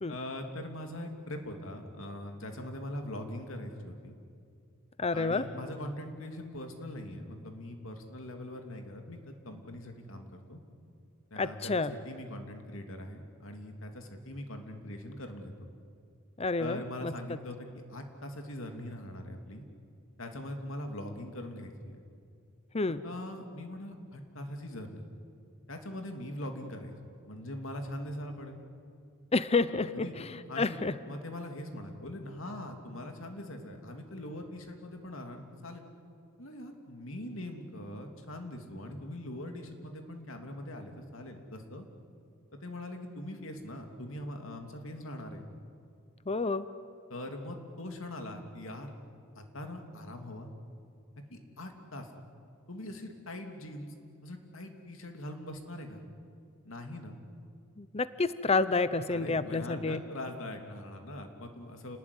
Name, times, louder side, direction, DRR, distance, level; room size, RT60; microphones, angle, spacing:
voice 1, 0.1-4.2 5.1-10.6 11.3-15.5 16.6-19.6 20.2-22.0 22.9-25.0 25.7-26.9 27.3-28.6 29.9-30.2 30.5-35.8 36.4-41.8 42.5-45.4 47.1-48.9 49.4-50.5 51.3-52.1 52.7-53.9 54.2-56.0 56.6-57.2 59.1-62.0, left 1 dB, 70° left, 4 dB, 3.0 m, -42 dB
voice 2, 5.0-5.5 11.4-11.9 16.4-17.1 22.7-23.0 29.3-30.1 30.6-30.9 46.3-46.7 57.8-60.0, left 3 dB, 30° left, 14 dB, 0.7 m, -29 dB
29.0 x 19.5 x 9.8 m, 2.4 s
head